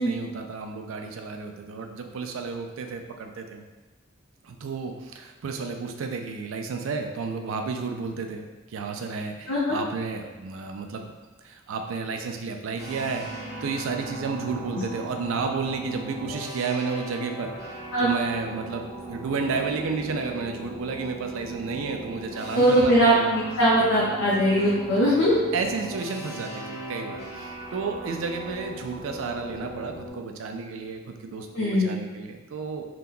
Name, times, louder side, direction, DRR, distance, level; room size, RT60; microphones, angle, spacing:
voice 1, 0.0-3.6 4.4-11.1 11.4-23.3 24.6-25.1 25.5-32.8, right 4 dB, 80° right, 5 dB, 0.4 m, -32 dB
sound 1, 12.8-30.1, right 1 dB, 15° right, 1.0 m, -38 dB
voice 2, 22.5-25.3 31.6-31.9, equal, 90° left, -6 dB, 0.6 m, -21 dB
2.8 x 2.2 x 3.7 m, 1.2 s
head